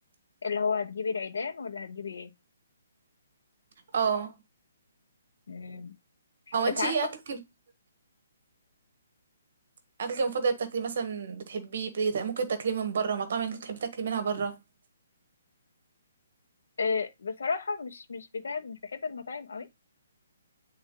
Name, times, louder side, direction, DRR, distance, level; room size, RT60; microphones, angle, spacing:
voice 1, 0.4-2.3 5.5-5.9 6.8-7.0 16.8-19.7, left 5 dB, 65° left, 0.9 m, -32 dB
voice 2, 3.9-4.3 6.5-7.4 10.0-14.6, right 5 dB, 40° right, 1.0 m, -30 dB
8.5 x 3.4 x 3.7 m
hypercardioid pair, 180°, 0 cm